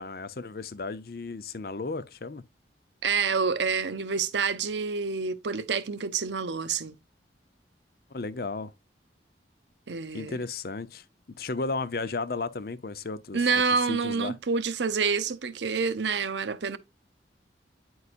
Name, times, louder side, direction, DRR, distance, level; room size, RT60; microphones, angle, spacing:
voice 1, 0.0-2.4 8.1-8.7 10.1-11.0 11.4-13.5 13.8-14.4, left 3 dB, 60° left, 0.6 m, -34 dB
voice 2, 3.0-7.0 9.9-10.4 13.3-16.8, right 5 dB, 85° right, 0.7 m, -27 dB
9.6 x 4.7 x 2.5 m
head